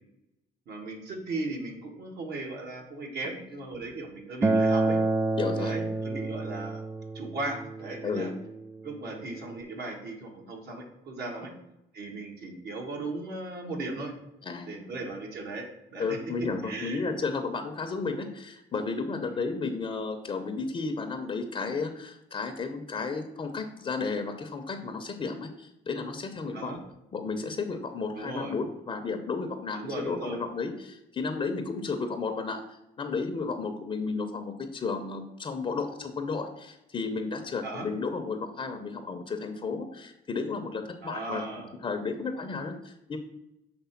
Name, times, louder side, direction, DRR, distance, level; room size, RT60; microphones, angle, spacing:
voice 1, 0.7-5.0 5.6-6.8 7.1-8.3 8.8-11.5 11.9-14.1 14.7-15.7 15.9-16.2 16.6-17.0 19.3-19.4 26.5-26.8 28.2-28.5 29.8-30.4 37.6-37.9 41.0-41.7, right 2 dB, 65° right, 1 dB, 1.8 m, -37 dB
Acoustic guitar, 4.4-9.6, right 2 dB, 15° right, 0.3 m, -29 dB
voice 2, 5.4-5.8 8.0-8.3 11.4-11.5 14.4-14.9 16.0-26.7 27.1-41.4 41.8-43.2, left 4 dB, 30° left, 5 dB, 0.7 m, -33 dB
6.9 x 3.3 x 5.8 m, 0.87 s
cardioid pair, 110°, 17 cm